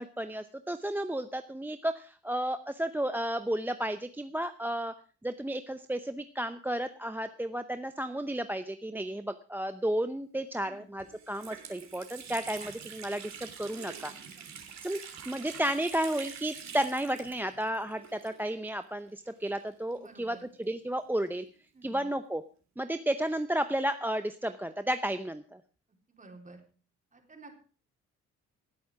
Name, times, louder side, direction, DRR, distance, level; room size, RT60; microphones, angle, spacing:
voice 1, 0.0-4.9 5.2-14.1 14.8-15.0 15.3-21.4 21.8-22.4 22.8-25.6, right 1 dB, 5° right, 11 dB, 0.7 m, -32 dB
Water tap faucet, 10.5-10.6 11.0-18.7 19.0-19.1 19.9-21.5, right 7 dB, 65° right, 3.2 m, -46 dB
voice 2, 20.0-20.5 21.7-22.1 26.1-26.6 27.1-27.6, right 2 dB, 25° right, 2 dB, 3.9 m, -52 dB
18.0 x 8.6 x 4.8 m, 0.39 s
cardioid pair, 90°, 30 cm